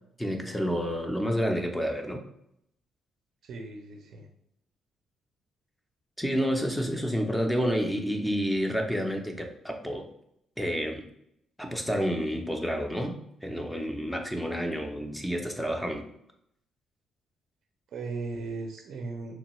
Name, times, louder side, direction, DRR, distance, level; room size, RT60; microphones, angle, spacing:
voice 1, 0.2-2.2 6.2-10.1 10.6-11.0 11.6-16.0, equal, 5° left, 3 dB, 0.5 m, -29 dB
voice 2, 3.4-4.3 17.9-19.4, right 3 dB, 65° right, 3 dB, 0.4 m, -37 dB
3.1 x 2.2 x 2.9 m, 0.75 s
cardioid pair, 90°, 0 cm